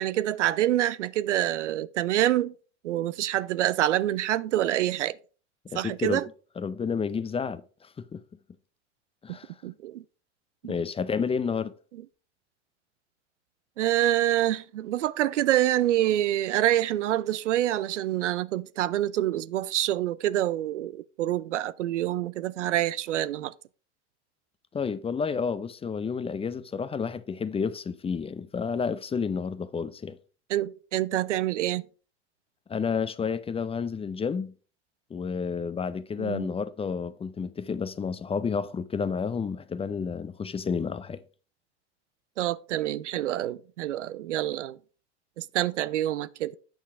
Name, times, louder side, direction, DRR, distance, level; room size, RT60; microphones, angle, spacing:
voice 1, 0.0-2.5 2.8-5.2 5.7-6.3 9.3-9.4 9.6-10.0 10.6-10.7 13.8-23.5 30.5-31.9 36.2-36.5 42.4-44.8 45.4-46.6, right 13 dB, 85° right, 0.6 m, -26 dB
voice 2, 5.6-6.2 6.6-8.2 9.2-9.5 10.6-11.7 24.7-30.2 32.7-34.5 35.1-41.2, left 5 dB, 15° left, 0.6 m, -30 dB
8.8 x 5.6 x 4.5 m
hypercardioid pair, 90°, 35 cm